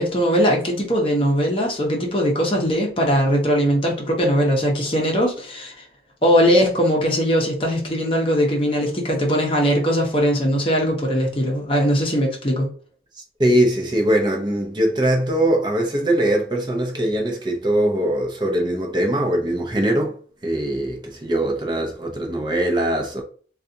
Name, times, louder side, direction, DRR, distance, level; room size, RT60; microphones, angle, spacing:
voice 1, 0.0-5.8 6.2-12.7, equal, 30° left, 0.8 m, -20 dB
voice 2, 13.4-20.2 20.4-23.2, right 1 dB, 25° right, 0.6 m, -21 dB
3.9 x 2.4 x 2.7 m
head